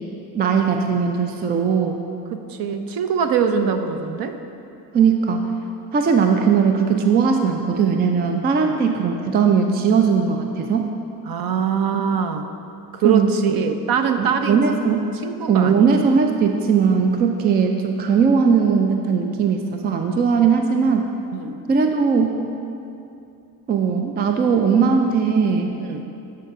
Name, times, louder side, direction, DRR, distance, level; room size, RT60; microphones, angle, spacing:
voice 1, 0.3-2.0 4.9-5.5 5.9-10.9 13.0-13.3 14.2-15.0 15.5-21.1 21.7-22.4 23.7-25.8, right 6 dB, 20° right, 4 dB, 0.4 m, -19 dB
voice 2, 2.5-4.4 8.6-8.8 11.3-12.5 12.9-14.6 15.2-15.8 21.3-21.6 25.8-26.0, right 6 dB, 45° right, 7 dB, 0.7 m, -23 dB
11.5 x 4.6 x 3.7 m, 2.6 s
hypercardioid pair, 70°, 49 cm